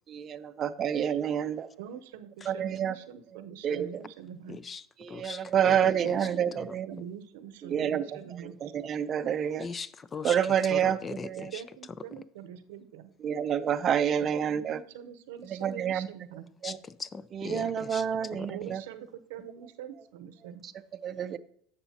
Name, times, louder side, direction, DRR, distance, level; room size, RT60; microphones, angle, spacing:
voice 1, 0.1-1.7 2.5-3.0 3.3-4.0 5.0-6.9 7.6-8.0 8.4-9.7 10.2-11.5 13.2-14.8 15.4-16.1 16.6-16.8 17.3-18.8 20.6-20.7 21.0-21.4, right 9 dB, 35° right, 11 dB, 0.5 m, -28 dB
voice 2, 1.8-4.6 6.0-6.6 6.8-8.7 11.5-13.1 14.4-16.5 18.5-20.7, right 9 dB, 80° right, 11 dB, 0.7 m, -44 dB
voice 3, 4.5-6.3 6.6-7.1 9.6-11.6 16.6-18.0 18.3-18.5, left 5 dB, 20° left, 18 dB, 0.3 m, -40 dB
11.0 x 6.8 x 2.8 m, 0.65 s
supercardioid pair, 120°, 0 cm